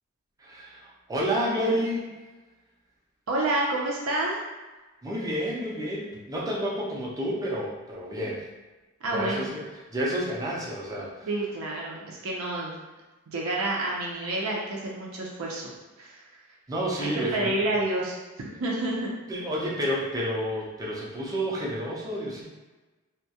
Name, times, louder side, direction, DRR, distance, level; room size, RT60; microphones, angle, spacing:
voice 1, 0.4-2.1 5.0-8.4 9.1-9.6 9.9-11.3 16.7-17.6 19.3-22.5, equal, 15° right, -4 dB, 0.5 m, -30 dB
voice 2, 3.3-4.4 9.0-9.5 11.3-12.8 13.3-15.7 16.0-16.2 17.0-19.1, right 2 dB, 75° right, -3 dB, 0.5 m, -29 dB
2.3 x 2.1 x 2.7 m, 1.2 s
head